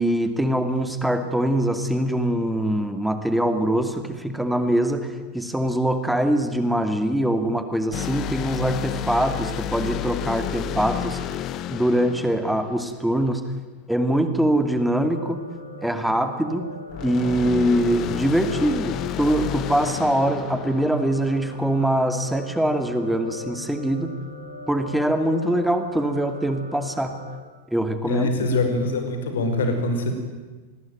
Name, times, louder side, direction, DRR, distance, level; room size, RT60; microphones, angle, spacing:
voice 1, 0.0-11.2 11.7-13.4 13.9-15.4 15.8-16.7 17.0-24.1 24.7-27.2 27.7-28.5, right 1 dB, ahead, 8 dB, 2.5 m, -23 dB
sound 1, 7.9-13.4 16.9-21.7, left 11 dB, 35° left, 1.3 m, -31 dB
sound 2, 15.1-27.4, left 1 dB, 85° left, 6.8 m, -40 dB
voice 2, 28.1-30.1, left 2 dB, 60° left, 6 dB, 5.4 m, -23 dB
26.5 x 20.5 x 9.4 m, 1.3 s
figure-of-eight pair, 90°, 0 cm